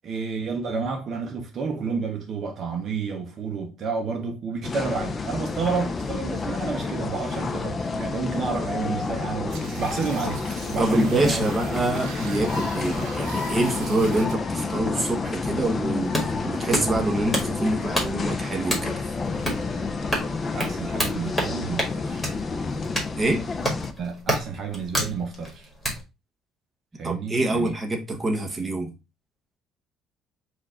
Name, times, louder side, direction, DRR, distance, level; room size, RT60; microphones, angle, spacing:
voice 1, 0.0-11.5 20.5-22.3 24.0-25.7 27.0-27.8, right 5 dB, 40° right, 0.7 m, -30 dB
sound 1, 4.6-23.9, left 4 dB, 25° left, 0.4 m, -29 dB
sound 2, 9.5-14.3, right 7 dB, 80° right, 0.8 m, -40 dB
voice 2, 10.8-18.9 23.2-23.4 27.0-28.9, right 1 dB, 10° right, 0.9 m, -25 dB
sound 3, 15.9-26.0, equal, 5° left, 1.6 m, -30 dB
4.5 x 2.4 x 4.1 m
cardioid pair, 150°, 0 cm